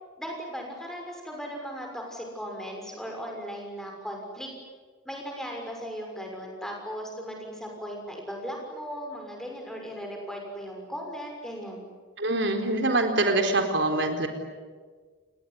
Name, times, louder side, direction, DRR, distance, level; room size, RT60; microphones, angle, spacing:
voice 1, 0.2-4.5 5.0-11.8, equal, ahead, 1 dB, 6.3 m, -37 dB
voice 2, 12.2-14.3, right 2 dB, 65° right, 5 dB, 4.3 m, -24 dB
29.0 x 20.0 x 9.8 m, 1.5 s
head